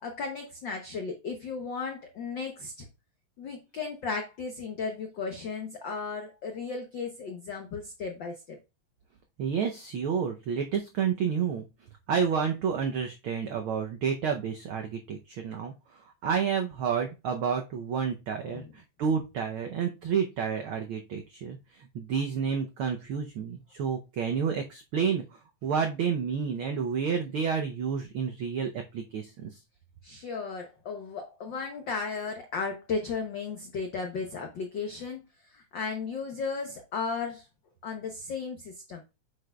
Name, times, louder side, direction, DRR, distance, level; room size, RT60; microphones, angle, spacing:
voice 1, 0.0-2.9 3.4-8.6 18.4-18.7 30.0-35.2 35.5-37.4 37.8-39.0, left 4 dB, 80° left, 4 dB, 1.0 m, -35 dB
voice 2, 9.4-11.7 12.1-15.7 16.2-18.6 19.0-25.2 25.6-29.5, right 6 dB, 85° right, 4 dB, 1.1 m, -30 dB
8.0 x 5.9 x 2.3 m, 0.27 s
omnidirectional pair, 3.4 m